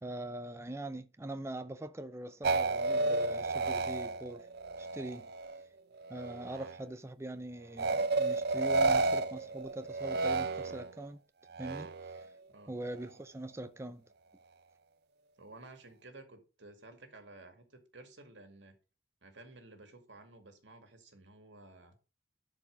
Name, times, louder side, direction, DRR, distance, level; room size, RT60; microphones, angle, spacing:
voice 1, 0.0-4.5 4.8-5.3 6.1-11.2 11.6-12.3 12.7-14.0, right 1 dB, 15° right, 0.5 m, -42 dB
sound 1, 2.4-5.6 6.0-6.8 7.8-11.0 11.5-12.3, right 3 dB, 60° right, 0.6 m, -32 dB
voice 2, 15.4-18.8 19.2-22.0, right 2 dB, 85° right, 2.2 m, -54 dB
11.0 x 4.8 x 5.2 m
head